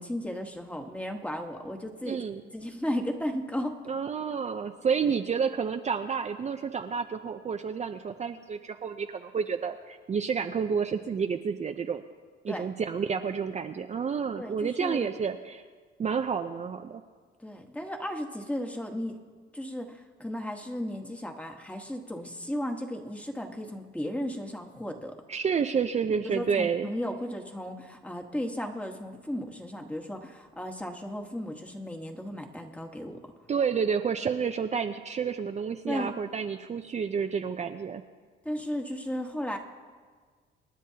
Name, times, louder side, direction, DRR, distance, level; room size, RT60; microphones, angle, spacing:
voice 1, 0.0-2.2 2.5-3.8 12.5-12.7 14.4-15.1 17.4-19.2 19.5-25.1 26.2-33.2 35.9-36.1 38.4-39.6, equal, 5° left, 3 dB, 1.3 m, -35 dB
voice 2, 2.0-2.4 3.9-12.0 12.4-15.6 16.0-17.0 25.3-26.9 33.5-38.0, right 6 dB, 35° right, 6 dB, 0.5 m, -30 dB
27.0 x 9.8 x 2.8 m, 1.5 s
cardioid pair, 90°, 20 cm